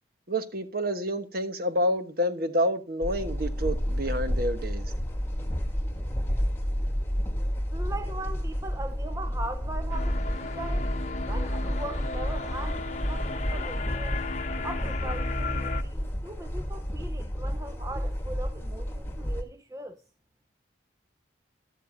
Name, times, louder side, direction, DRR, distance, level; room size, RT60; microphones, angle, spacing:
voice 1, 0.3-4.9, equal, 50° right, 1.2 m, -28 dB
sound 1, 3.0-19.4, equal, 10° left, 1.4 m, -31 dB
voice 2, 7.7-10.9 11.3-14.2 14.6-20.0, right 2 dB, 15° right, 0.6 m, -40 dB
sound 2, 9.9-15.8, left 3 dB, 40° left, 0.9 m, -35 dB
sound 3, 10.3-14.7, right 2 dB, 80° right, 3.7 m, -50 dB
13.0 x 12.0 x 2.6 m
head